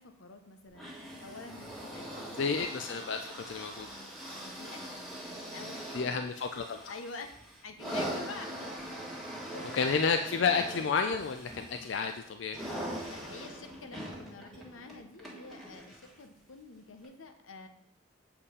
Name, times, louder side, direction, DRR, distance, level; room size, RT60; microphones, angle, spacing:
voice 1, 0.0-2.4 4.6-5.0 5.5-6.2 6.9-7.3 7.6-8.7 9.5-9.8 13.1-17.7, left 3 dB, 90° left, 7 dB, 0.8 m, -48 dB
sound 1, 0.7-16.2 17.0-17.1, equal, ahead, 1.5 m, -42 dB
voice 2, 2.3-3.9 5.9-6.9 9.7-12.6, left 5 dB, 65° left, 6 dB, 0.4 m, -31 dB
7.2 x 4.4 x 5.0 m, 0.70 s
head